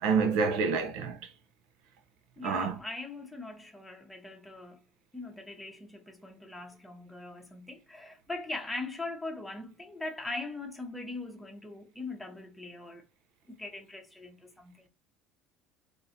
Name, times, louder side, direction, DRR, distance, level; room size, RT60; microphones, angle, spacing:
voice 1, 0.0-1.3 2.4-2.8, right 5 dB, 80° right, 0.9 m, -28 dB
voice 2, 2.4-4.8 5.1-13.0 13.5-14.9, left 2 dB, 5° left, 0.9 m, -41 dB
3.8 x 2.7 x 2.8 m
cardioid pair, 135°, 0 cm